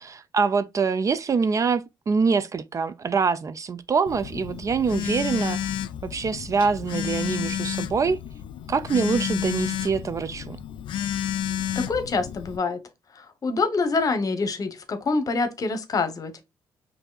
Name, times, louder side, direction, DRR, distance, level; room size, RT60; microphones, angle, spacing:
voice 1, 0.0-5.8 6.0-8.2 8.7-10.6, right 5 dB, 40° right, 0.4 m, -25 dB
Telephone, 4.1-12.6, left 10 dB, 70° left, 0.4 m, -31 dB
voice 2, 11.7-12.8 13.2-16.4, left 4 dB, 45° left, 0.9 m, -26 dB
5.4 x 2.7 x 2.3 m
cardioid pair, 70°, 8 cm